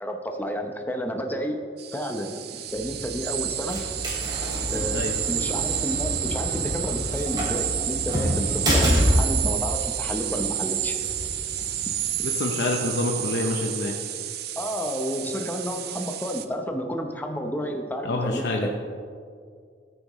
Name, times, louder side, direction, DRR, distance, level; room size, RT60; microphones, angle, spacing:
voice 1, 0.0-1.6 1.9-3.8 4.7-11.0 13.2-13.3 14.6-18.7, equal, 10° left, 4 dB, 0.8 m, -31 dB
sound 1, 1.8-16.5, right 11 dB, 60° right, 0.5 m, -30 dB
sound 2, 2.7-12.3, equal, 25° right, 2.8 m, -28 dB
voice 2, 12.2-13.9 18.0-18.7, left 2 dB, 65° left, 1 dB, 0.8 m, -27 dB
14.0 x 9.2 x 3.1 m, 2.2 s
head